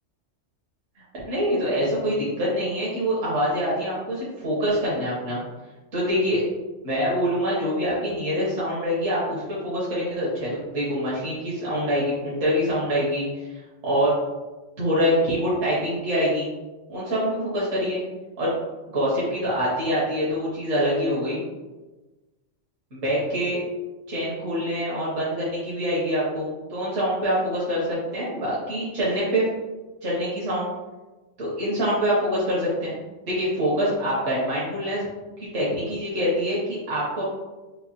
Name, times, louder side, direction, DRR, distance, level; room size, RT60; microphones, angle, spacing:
voice 1, 1.0-5.4 5.9-6.4 6.8-14.1 14.8-16.5 16.9-18.0 18.4-18.5 18.9-21.4 22.9-23.6 24.1-29.5 30.0-30.7 31.4-33.0 33.3-35.1 35.4-37.2, equal, 70° right, -8 dB, 1.4 m, -25 dB
4.7 x 2.6 x 2.8 m, 1.2 s
omnidirectional pair, 1.3 m